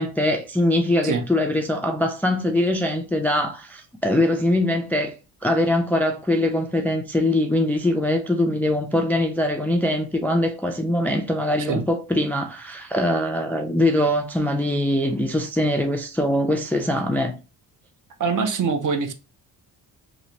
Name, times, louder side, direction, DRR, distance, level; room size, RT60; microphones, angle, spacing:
voice 1, 0.0-5.2 5.4-17.4, left 1 dB, 5° left, 0.3 m, -22 dB
voice 2, 18.2-19.1, right 5 dB, 45° right, 0.6 m, -24 dB
3.1 x 2.4 x 2.7 m
cardioid pair, 85°, 42 cm